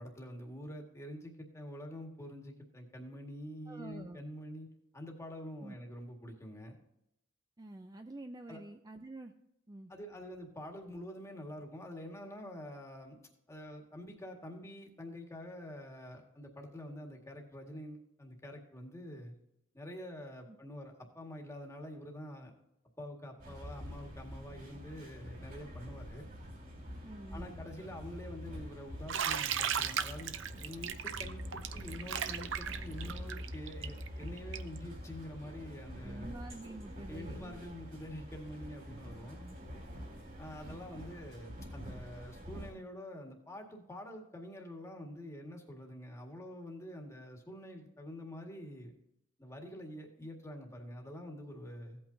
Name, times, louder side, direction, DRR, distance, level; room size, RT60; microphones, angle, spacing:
voice 1, 0.0-4.7 4.9-6.8 8.5-8.6 9.9-13.2 13.5-19.3 19.7-22.5 23.0-26.3 27.3-30.3 30.6-36.3 37.1-39.4 40.4-48.9 49.4-52.0, left 1 dB, 15° left, 1 dB, 1.8 m, -46 dB
voice 2, 3.7-4.2 5.6-5.8 7.6-9.3 9.7-9.9 27.0-27.6 36.0-37.4 39.4-39.6, right 2 dB, 20° right, 6 dB, 0.4 m, -47 dB
sound 1, 23.4-42.7, equal, 50° right, 3.9 m, -46 dB
Bathtub (filling or washing), 29.1-34.8, right 8 dB, 65° right, 0.6 m, -36 dB
15.5 x 8.6 x 2.7 m, 0.82 s
head